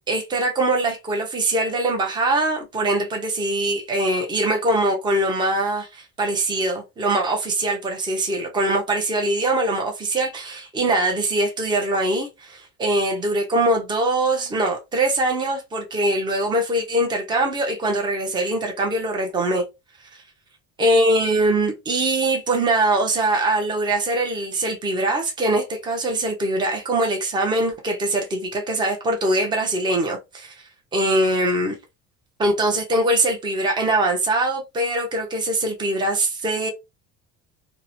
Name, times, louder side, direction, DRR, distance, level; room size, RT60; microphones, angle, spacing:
voice 1, 0.1-19.6 20.8-30.6 30.9-31.7 32.4-36.7, right 1 dB, 15° right, 0.6 m, -22 dB
2.8 x 2.1 x 2.6 m
cardioid pair, 155°, 35 cm